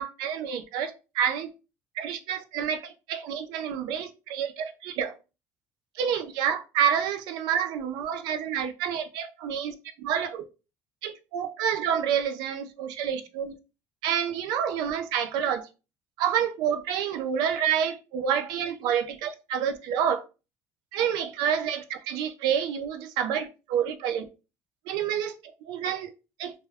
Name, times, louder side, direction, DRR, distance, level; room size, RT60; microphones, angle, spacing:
voice 1, 0.0-1.5 2.0-5.1 6.0-10.5 11.0-13.5 14.0-15.7 16.2-20.2 20.9-24.3 24.9-25.4 25.7-26.1 26.4-26.5, right 8 dB, 75° right, 0.4 m, -28 dB
2.2 x 2.0 x 3.3 m
cardioid pair, 135°, 7 cm